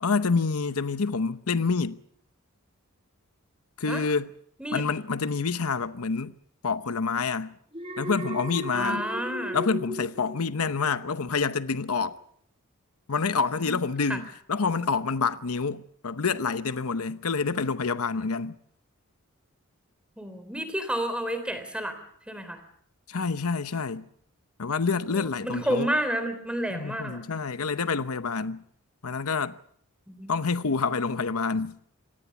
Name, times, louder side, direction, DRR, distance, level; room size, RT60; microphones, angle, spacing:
voice 1, 0.0-2.0 3.8-4.3 4.7-6.4 6.6-7.6 8.0-9.0 9.5-12.2 13.1-18.6 23.1-24.1 24.6-25.9 26.7-28.6 29.0-29.5 30.3-31.8, left 4 dB, 80° left, 0.9 m, -27 dB
Alarm, 7.7-11.1 11.4-11.8, equal, 25° right, 1.8 m, -37 dB
voice 2, 8.7-9.6 13.7-13.8 14.1-14.2 20.2-22.0 22.3-22.6 25.1-27.2 30.1-30.3, equal, 5° right, 3.4 m, -30 dB
26.0 x 18.0 x 7.1 m
head